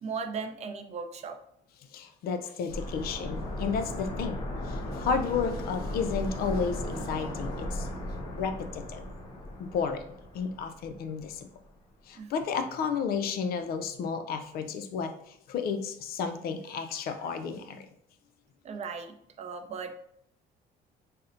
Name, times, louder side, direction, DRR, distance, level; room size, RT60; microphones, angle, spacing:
voice 1, 0.0-1.4 12.2-12.3 18.6-19.9, right 5 dB, 40° right, 6 dB, 0.4 m, -37 dB
voice 2, 1.9-7.9 8.4-9.0 9.6-10.0 10.3-11.5 12.1-17.9, left 6 dB, 65° left, 8 dB, 0.4 m, -32 dB
sound 1, 2.7-11.4 11.7-11.8, left 1 dB, 30° left, 0.7 m, -36 dB
4.1 x 2.1 x 2.5 m, 0.69 s
cardioid pair, 110°, 17 cm